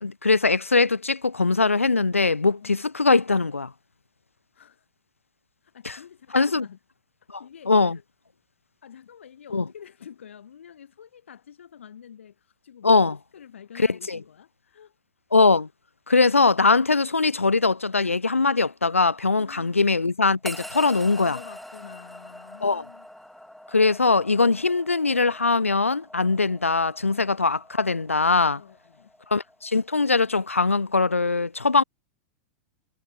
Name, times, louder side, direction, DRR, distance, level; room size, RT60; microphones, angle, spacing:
voice 1, 0.0-3.7 5.8-6.0 6.3-6.7 7.3-7.4 7.7-8.0 9.5-9.6 12.8-13.2 13.8-14.2 15.3-15.7 16.1-21.4 22.6-22.8 23.7-28.6 29.3-31.8, left 3 dB, 85° left, 0.4 m, -21 dB
voice 2, 4.5-4.8 5.6-6.8 7.4-8.0 8.8-13.0 13.3-15.0 19.4-19.8 21.2-23.1 27.0-27.4 28.5-29.1, left 8 dB, 70° left, 2.8 m, -47 dB
sound 1, 20.4-30.8, left 1 dB, ahead, 1.9 m, -44 dB
figure-of-eight pair, 95°, 7 cm